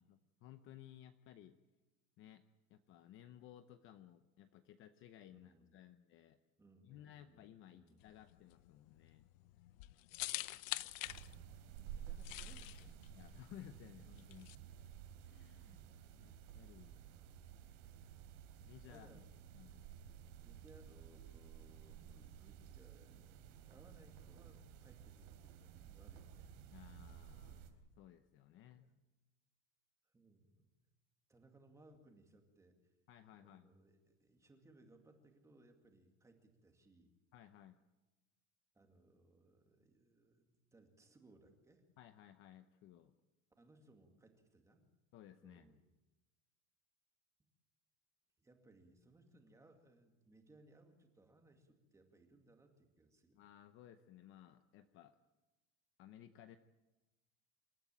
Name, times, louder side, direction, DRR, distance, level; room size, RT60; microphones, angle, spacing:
voice 1, 0.0-1.6 2.2-2.4 2.7-6.4 6.8-9.3 13.1-14.5 15.3-15.9 16.1-17.0 18.6-19.2 19.5-19.9 26.7-28.9 33.1-33.7 37.3-37.8 42.0-43.1 45.1-45.6 53.3-55.2 56.0-56.6, left 11 dB, 30° left, 9 dB, 0.8 m, -58 dB
voice 2, 5.3-5.8 6.6-7.4 7.7-8.0 10.8-11.4 11.9-13.0 18.9-19.2 19.6-19.8 20.4-26.5 28.6-28.9 30.0-30.7 31.3-32.9 33.4-37.1 38.7-41.8 43.6-44.9 45.4-45.8 48.4-53.4, right 2 dB, 10° right, 4 dB, 2.3 m, -66 dB
sound 1, 8.0-14.6, left 18 dB, 80° left, 0.9 m, -46 dB
sound 2, 11.0-27.7, right 9 dB, 65° right, 3.9 m, -54 dB
27.5 x 13.5 x 9.0 m, 1.1 s
cardioid pair, 175°, 39 cm